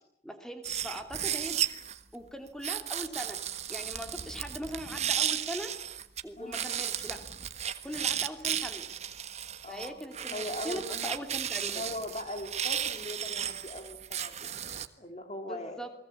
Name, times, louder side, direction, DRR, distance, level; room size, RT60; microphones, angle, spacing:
voice 1, 0.2-1.6 2.1-3.4 3.7-5.7 6.2-7.2 7.8-8.8 9.7-11.8 15.5-15.9, equal, 5° left, 6 dB, 3.0 m, -40 dB
sound 1, 0.6-2.0 2.6-6.2 6.5-14.9, right 9 dB, 35° right, 1.5 m, -34 dB
voice 2, 9.6-10.0 10.3-11.1 11.6-14.3 15.0-15.9, left 1 dB, 35° left, 5 dB, 2.8 m, -40 dB
29.5 x 20.5 x 8.6 m, 0.75 s
head